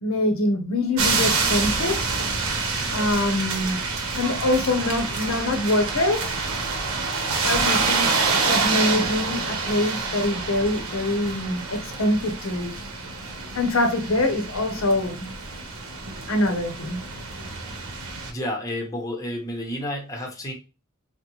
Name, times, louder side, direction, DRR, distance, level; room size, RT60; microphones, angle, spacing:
voice 1, 0.0-2.0 2.9-3.8 4.1-6.3 7.4-12.7 13.5-15.3 16.3-17.0, left 1 dB, 80° left, 0.7 m, -24 dB
sound 1, 1.0-18.3, right 4 dB, 90° right, 0.8 m, -27 dB
voice 2, 18.3-20.5, left 1 dB, 15° left, 0.8 m, -30 dB
3.8 x 2.1 x 2.9 m
head